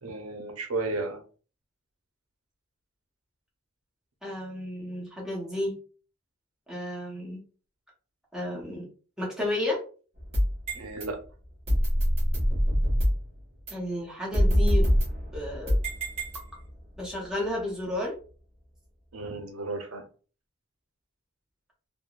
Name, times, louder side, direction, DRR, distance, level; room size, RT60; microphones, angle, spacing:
voice 1, 0.0-1.2 10.7-11.2 19.1-20.0, right 3 dB, 85° right, 3 dB, 0.8 m, -33 dB
voice 2, 4.2-5.8 6.7-7.4 8.3-8.9 9.2-9.8 13.7-14.9 15.3-15.8 17.0-18.1, left 1 dB, 5° right, -4 dB, 0.9 m, -32 dB
sound 1, 10.2-11.0 11.7-13.3 13.7-13.8 14.3-16.8, equal, 30° right, 1.1 m, -24 dB
3.4 x 2.2 x 2.4 m, 0.39 s
head